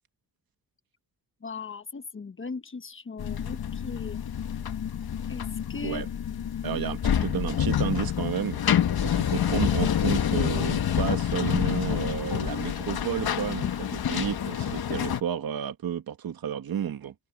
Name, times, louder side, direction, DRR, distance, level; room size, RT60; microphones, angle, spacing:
voice 1, 1.4-4.2 5.3-6.0, left 4 dB, 30° left, 1.2 m, -38 dB
sound 1, 3.2-15.2, left 9 dB, 65° left, 1.5 m, -27 dB
voice 2, 6.6-8.6 9.0-17.1, right 9 dB, 60° right, 1.5 m, -31 dB
open air
cardioid pair, 100°, 41 cm